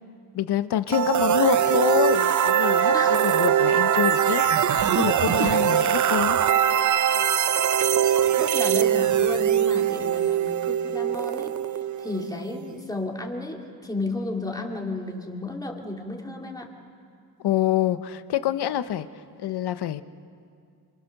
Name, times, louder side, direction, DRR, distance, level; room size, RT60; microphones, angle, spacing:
voice 1, 0.3-4.4 4.7-6.4 17.4-19.1 19.4-20.0, left 11 dB, 85° left, 12 dB, 1.0 m, -26 dB
sound 1, 0.9-12.7, right 9 dB, 50° right, 0.7 m, -22 dB
voice 2, 8.4-16.7, left 2 dB, 10° left, 0 dB, 2.8 m, -33 dB
28.0 x 26.5 x 6.6 m, 2.3 s
cardioid pair, 135°, 38 cm